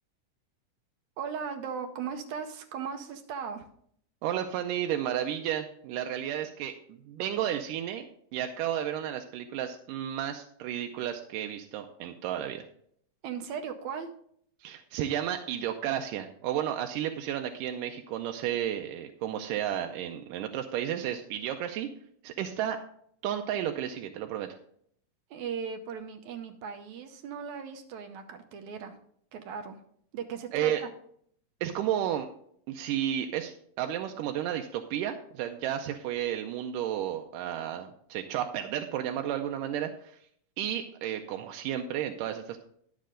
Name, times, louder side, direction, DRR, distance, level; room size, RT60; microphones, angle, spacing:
voice 1, 1.2-3.7 13.2-14.1 25.3-29.0 29.3-29.8 30.1-30.9, right 6 dB, 75° right, 6 dB, 2.0 m, -37 dB
voice 2, 4.2-6.7 7.1-12.7 14.6-21.9 22.2-22.8 23.2-24.5 30.5-30.8 31.6-32.3 32.7-40.2 40.6-42.7, right 10 dB, 90° right, 4 dB, 2.2 m, -32 dB
11.5 x 7.4 x 3.8 m, 0.65 s
omnidirectional pair, 3.7 m